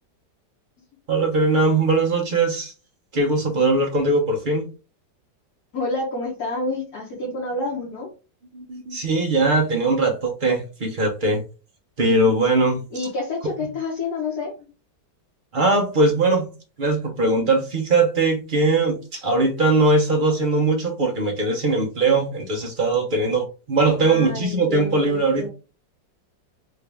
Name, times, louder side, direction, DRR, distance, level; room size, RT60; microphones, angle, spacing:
voice 1, 1.1-2.7 3.1-4.7 8.5-11.4 12.0-12.8 15.5-16.5 16.8-25.5, right 2 dB, 45° right, 0.7 m, -20 dB
voice 2, 5.7-8.1 12.9-14.5 24.0-25.5, left 2 dB, 60° left, 1.5 m, -28 dB
3.9 x 2.6 x 3.3 m
omnidirectional pair, 1.9 m